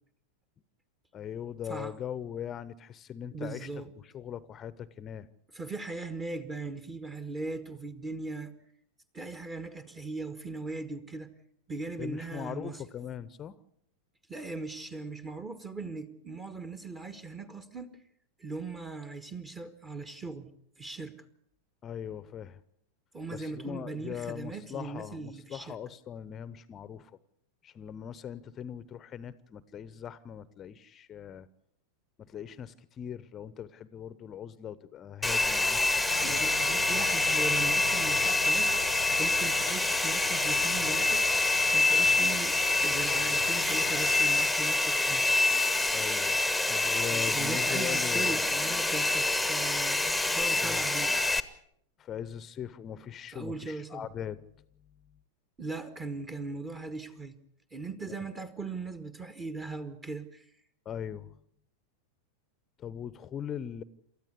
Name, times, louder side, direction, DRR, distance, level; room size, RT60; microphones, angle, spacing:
voice 1, 1.1-3.7 4.0-5.3 12.0-13.6 21.8-22.6 23.3-27.1 27.6-31.5 32.2-36.0 36.3-36.4 45.9-46.4 46.7-48.4 50.6-50.8 52.0-54.4 58.1-58.2 60.8-61.4 62.8-63.8, left 9 dB, 25° left, 0.9 m, -40 dB
voice 2, 3.3-3.9 5.5-8.5 9.1-11.3 11.7-12.8 14.3-18.0 18.4-20.5 20.8-21.2 23.1-25.8 36.2-38.7 39.1-41.4 41.7-45.3 46.9-47.0 47.3-51.2 53.3-54.1 55.6-57.4 57.7-60.5, right 3 dB, 20° right, 1.5 m, -39 dB
Domestic sounds home sounds, 35.2-51.4, left 2 dB, ahead, 1.1 m, -26 dB
sound 1, 36.1-44.5, left 9 dB, 65° left, 0.8 m, -42 dB
28.5 x 13.5 x 8.2 m
figure-of-eight pair, 90°, 0 cm